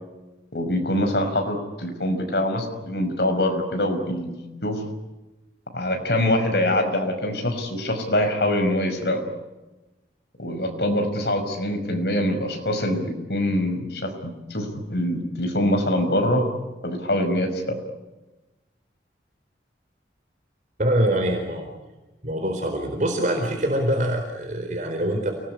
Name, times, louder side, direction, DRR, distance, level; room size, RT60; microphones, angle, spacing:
voice 1, 0.5-4.4 4.6-4.8 5.7-9.2 10.4-16.4 16.8-17.8, left 1 dB, 65° left, 5 dB, 5.9 m, -24 dB
voice 2, 20.8-21.7 22.2-25.3, right 1 dB, 45° right, 3 dB, 4.3 m, -24 dB
29.5 x 20.0 x 9.9 m, 1.1 s
head